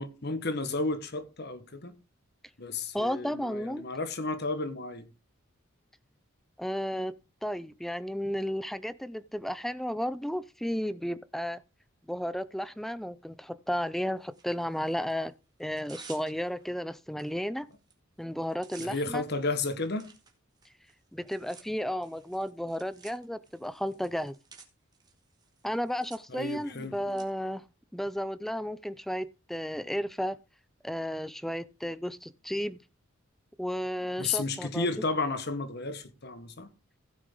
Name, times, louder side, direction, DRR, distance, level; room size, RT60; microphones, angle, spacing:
voice 1, 0.0-1.9 2.6-5.1 18.8-20.1 26.3-27.0 34.2-36.7, left 3 dB, 55° left, 1.2 m, -32 dB
voice 2, 2.9-3.9 6.6-7.1 7.4-11.6 12.1-15.3 15.6-17.7 18.2-19.2 21.1-24.4 25.6-27.6 27.9-30.4 30.8-32.8 33.6-34.9, equal, ahead, 0.4 m, -33 dB
Tearing, 14.3-15.1 15.6-16.7 17.2-17.3 17.6-17.9 18.2-27.2, right 5 dB, 20° right, 1.9 m, -54 dB
16.0 x 6.4 x 3.7 m
head